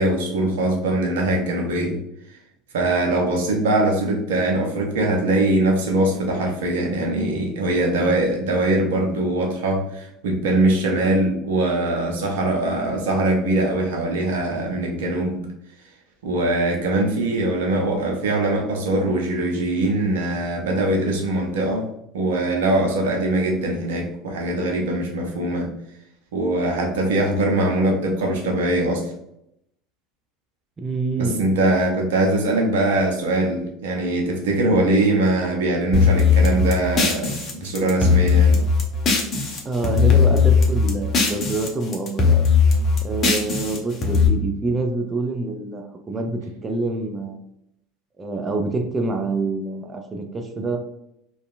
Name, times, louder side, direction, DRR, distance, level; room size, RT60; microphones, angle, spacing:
voice 1, 0.0-2.0 2.7-15.4 16.2-21.9 22.1-25.7 26.3-29.1 31.2-38.6, right 2 dB, 75° right, 1 dB, 0.6 m, -22 dB
voice 2, 30.8-31.4 39.6-42.4 43.0-47.4 48.2-50.8, right 3 dB, 25° right, 4 dB, 0.4 m, -26 dB
sound 1, 35.9-39.6 39.8-41.7 41.9-44.3, left 5 dB, 40° left, 0.6 m, -18 dB
2.6 x 2.3 x 2.4 m, 0.79 s
hypercardioid pair, 75°, 0 cm